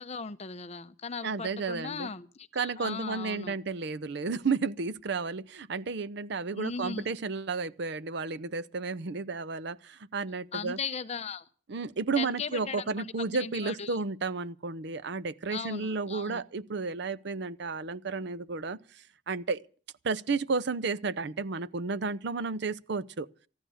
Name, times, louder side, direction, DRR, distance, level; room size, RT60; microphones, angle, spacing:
voice 1, 0.0-3.5 6.5-7.1 10.5-11.5 12.2-13.1 13.4-14.0 15.5-16.4, left 5 dB, 35° left, 0.7 m, -38 dB
voice 2, 1.2-2.1 2.6-10.8 11.7-18.8 19.3-19.6 20.0-23.3, right 4 dB, 65° right, 0.6 m, -32 dB
14.5 x 11.5 x 6.3 m
head